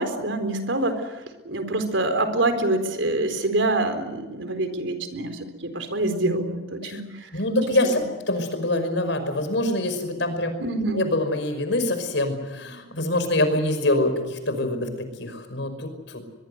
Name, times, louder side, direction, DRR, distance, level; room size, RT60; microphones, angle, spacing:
voice 1, 0.0-7.3 7.8-7.9 10.6-11.1, right 2 dB, 90° right, 8 dB, 4.1 m, -26 dB
voice 2, 7.3-8.0 8.3-10.5 10.9-16.2, left 1 dB, 75° left, 8 dB, 5.5 m, -25 dB
23.0 x 23.0 x 8.1 m, 1.2 s
head